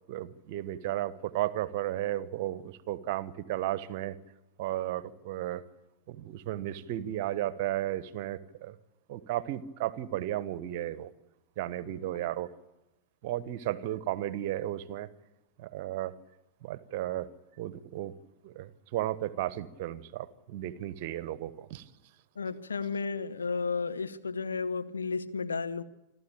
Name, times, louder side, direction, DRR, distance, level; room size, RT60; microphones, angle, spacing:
voice 1, 0.1-4.1 4.6-5.6 6.1-8.7 9.1-11.1 11.6-12.5 13.2-15.1 15.6-16.1 16.6-17.3 17.6-18.1 18.4-21.9, right 13 dB, 50° right, 1.2 m, -34 dB
voice 2, 22.4-25.8, left 4 dB, 75° left, 1.2 m, -33 dB
27.5 x 13.0 x 8.8 m
figure-of-eight pair, 90°, 0 cm